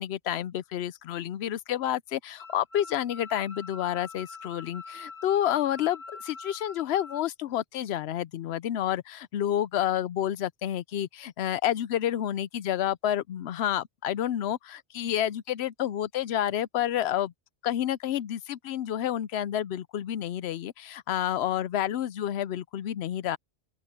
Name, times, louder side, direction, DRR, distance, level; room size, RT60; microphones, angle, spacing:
voice 1, 0.0-17.3 17.6-23.4, left 11 dB, 85° left, 0.8 m, -29 dB
sound 1, 2.4-7.2, left 3 dB, 70° right, 4.8 m, -44 dB
open air
omnidirectional pair, 1.0 m